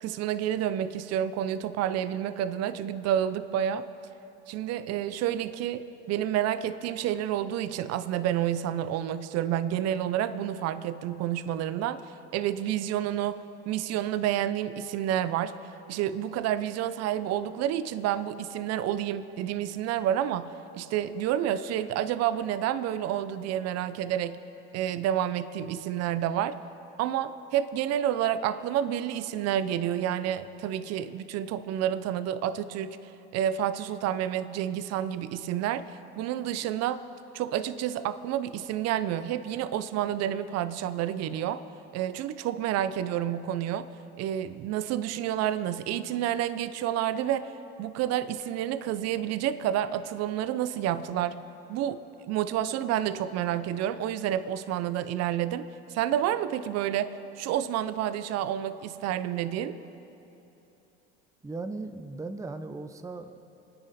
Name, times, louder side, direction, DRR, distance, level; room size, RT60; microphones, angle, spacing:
voice 1, 0.0-3.9 4.5-12.0 12.3-15.5 15.9-20.5 20.8-24.4 24.7-26.6 27.0-33.0 33.3-35.9 36.2-37.0 37.3-41.6 41.9-43.9 44.2-47.5 47.8-51.4 51.7-59.7, right 11 dB, 55° right, 13 dB, 0.7 m, -29 dB
voice 2, 61.4-63.4, right 3 dB, 10° right, 8 dB, 0.8 m, -37 dB
26.5 x 9.9 x 4.3 m, 2.9 s
supercardioid pair, 85°, 30 cm